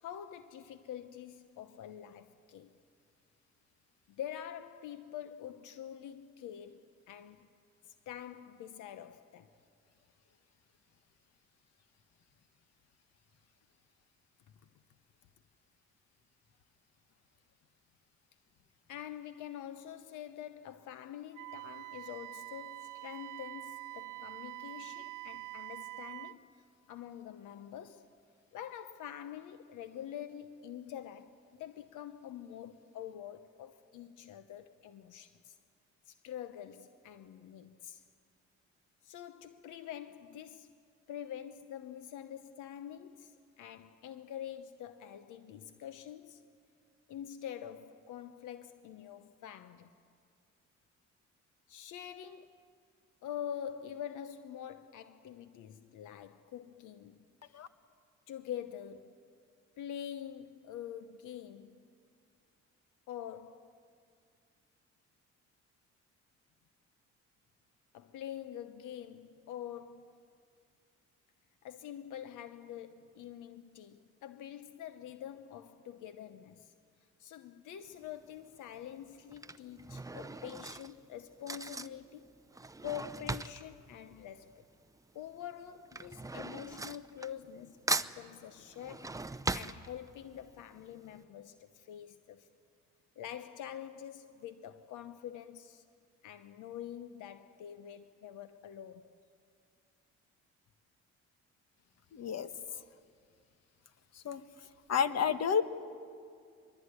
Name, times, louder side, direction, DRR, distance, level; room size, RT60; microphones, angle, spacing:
voice 1, 0.0-2.7 4.2-6.8 7.1-7.5 7.9-9.5 18.9-26.5 26.9-28.1 28.5-35.6 36.1-38.0 39.0-40.7 41.1-46.4 47.1-49.9 51.7-52.6 53.2-57.2 58.3-59.2 59.8-61.9 63.1-63.8 67.9-70.3 71.6-76.7 77.2-82.3 82.8-84.6 85.1-92.5 93.2-95.8 96.2-99.1, left 10 dB, 85° left, 1.0 m, -46 dB
Wind instrument woodwind instrument, 21.3-26.4, right 20 dB, 90° right, 0.7 m, -45 dB
Drawer open or close / Cutlery silverware, 77.9-78.3 79.1-85.0 85.2-87.6 87.9-90.4 90.8-90.9 91.1-91.2, right 3 dB, 10° right, 0.7 m, -39 dB
voice 2, 102.1-102.5 104.2-104.4 104.9-105.6, left 7 dB, 60° left, 1.4 m, -30 dB
24.5 x 22.0 x 9.7 m
cardioid pair, 90°, 30 cm